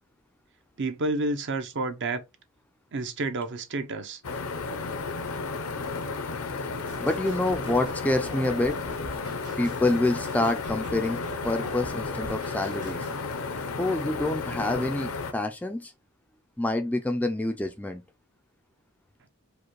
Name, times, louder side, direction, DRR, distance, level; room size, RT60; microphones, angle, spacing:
voice 1, 0.8-2.2 2.9-4.2, right 2 dB, 55° right, 0.6 m, -30 dB
sound 1, 4.2-15.3, left 4 dB, 75° left, 0.6 m, -33 dB
sound 2, 6.9-13.2, right 1 dB, 85° right, 2.1 m, -43 dB
voice 2, 7.0-8.8 9.6-13.1 13.8-15.9 16.6-18.0, left 2 dB, 5° left, 0.3 m, -27 dB
4.9 x 2.2 x 3.0 m
head